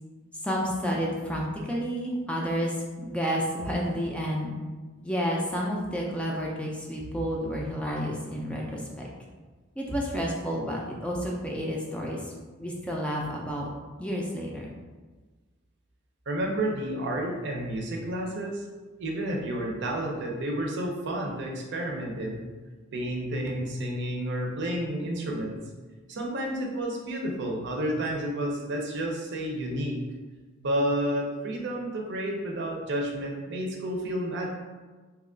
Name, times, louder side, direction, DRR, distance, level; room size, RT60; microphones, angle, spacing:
voice 1, 0.4-4.5 5.0-9.1 9.8-12.2 12.6-13.7 14.0-14.7, equal, 5° left, -3 dB, 0.4 m, -30 dB
voice 2, 16.3-18.6 19.0-22.5 22.9-25.6 26.1-30.0 30.6-34.5, right 1 dB, 60° right, 0 dB, 0.6 m, -30 dB
3.0 x 2.3 x 3.7 m, 1.3 s
head